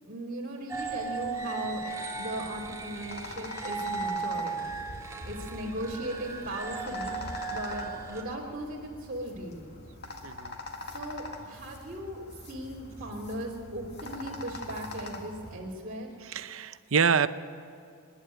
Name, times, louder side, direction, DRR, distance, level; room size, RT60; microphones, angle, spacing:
voice 1, 0.0-4.7 5.2-9.7 10.9-16.1, right 1 dB, 40° right, -4 dB, 3.0 m, -38 dB
sound 1, 0.7-8.2, right 4 dB, 15° right, 2.0 m, -36 dB
sound 2, 2.4-15.6, left 2 dB, 50° left, 2.0 m, -43 dB
voice 2, 10.2-10.6 16.3-17.3, right 6 dB, 65° right, 14 dB, 0.7 m, -26 dB
26.0 x 11.0 x 9.2 m, 2.5 s
head